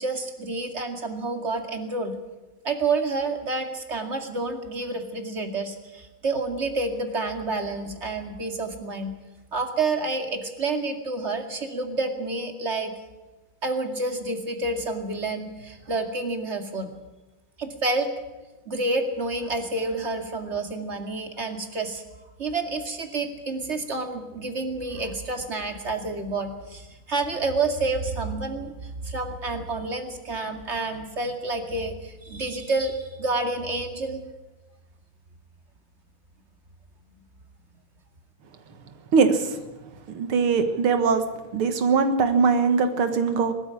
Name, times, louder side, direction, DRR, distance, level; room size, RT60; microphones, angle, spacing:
voice 1, 0.0-2.2 2.6-9.2 9.5-12.9 13.6-16.9 17.6-18.1 18.7-22.0 22.4-34.3, right 3 dB, 30° right, 4 dB, 2.4 m, -29 dB
voice 2, 40.1-41.2 41.5-43.5, right 5 dB, 90° right, 8 dB, 2.4 m, -21 dB
20.5 x 13.5 x 9.7 m, 1.1 s
omnidirectional pair, 2.3 m